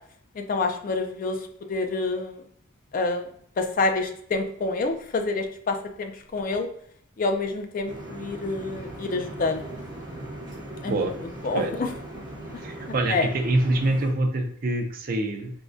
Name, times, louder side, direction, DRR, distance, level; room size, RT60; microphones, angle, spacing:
voice 1, 0.4-1.4 1.7-2.4 2.9-3.3 3.6-6.7 7.2-9.6 10.8-11.1 11.4-11.9 13.1-13.3, left 3 dB, 40° left, 6 dB, 0.3 m, -27 dB
sound 1, 7.9-14.1, right 1 dB, 20° right, 1.0 m, -39 dB
voice 2, 12.6-15.5, right 2 dB, 45° right, 4 dB, 0.4 m, -25 dB
3.6 x 2.1 x 2.5 m, 0.65 s
head